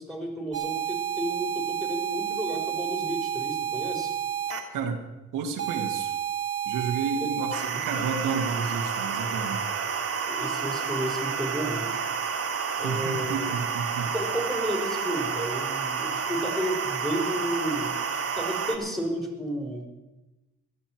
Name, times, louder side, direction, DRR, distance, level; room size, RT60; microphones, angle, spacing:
voice 1, 0.0-4.1 7.2-7.3 7.7-7.8 10.2-11.9 12.7-13.6 14.1-19.9, equal, ahead, 1 dB, 4.0 m, -32 dB
sound 1, 0.5-4.6 5.6-18.8, right 7 dB, 50° right, 2.1 m, -30 dB
voice 2, 4.7-5.0 5.3-6.1 6.7-9.6 12.8-14.1, right 5 dB, 90° right, 2 dB, 1.8 m, -31 dB
17.0 x 12.5 x 4.5 m, 1.0 s
cardioid pair, 90°, 30 cm